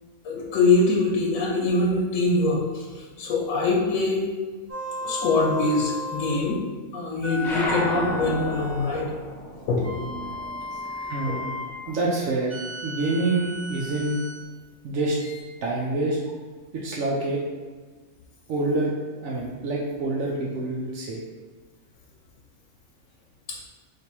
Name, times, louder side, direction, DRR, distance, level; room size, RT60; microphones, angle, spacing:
voice 1, 0.2-4.3 5.0-6.6 6.9-9.1 9.7-9.9 11.2-11.4 23.5-23.6, left 3 dB, 80° left, -3 dB, 1.0 m, -23 dB
sound 1, 4.7-6.5 7.2-9.1 9.8-11.8 12.5-14.4 15.2-15.4, left 2 dB, 15° right, 0.8 m, -34 dB
sound 2, 7.4-12.3 12.6-14.0, equal, 20° left, 0.9 m, -34 dB
voice 2, 10.9-11.6 11.9-12.5 12.8-14.2 14.8-15.2 15.6-16.2 16.7-17.4 18.5-18.9 19.2-21.2, right 2 dB, 80° right, -4 dB, 1.0 m, -26 dB
3.3 x 2.5 x 4.4 m, 1.4 s
omnidirectional pair, 1.4 m